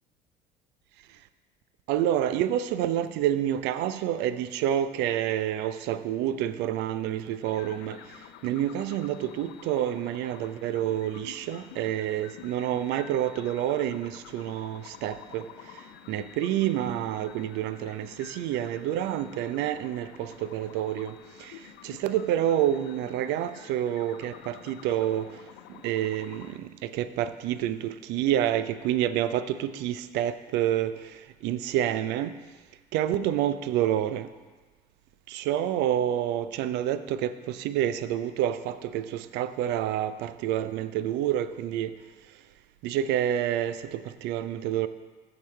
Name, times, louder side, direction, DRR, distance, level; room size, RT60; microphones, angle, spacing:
voice 1, 1.9-8.0 8.4-15.5 16.1-21.5 21.8-25.3 25.8-30.9 31.4-32.3 32.9-34.3 35.3-41.9 42.8-44.9, right 11 dB, 60° right, 13 dB, 0.5 m, -28 dB
sound 1, 7.4-26.6, left 9 dB, 65° left, 0.6 m, -49 dB
14.0 x 5.9 x 3.3 m, 1.3 s
hypercardioid pair, 60°, 20 cm